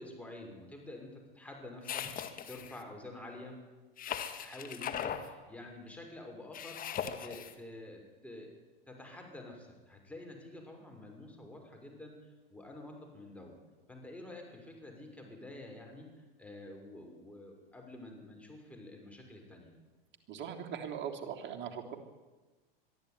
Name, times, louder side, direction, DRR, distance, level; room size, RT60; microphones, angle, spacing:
voice 1, 0.0-2.0 2.5-3.6 4.4-6.9 7.2-8.5 8.9-13.6 13.9-19.7, left 1 dB, 5° left, 1 dB, 6.1 m, -48 dB
sound 1, 1.8-2.8 4.0-5.3 6.5-7.5, left 8 dB, 30° left, 2.1 m, -39 dB
voice 2, 20.3-21.9, right 8 dB, 40° right, 3 dB, 3.3 m, -40 dB
22.5 x 13.5 x 9.8 m, 1.2 s
hypercardioid pair, 105°, 29 cm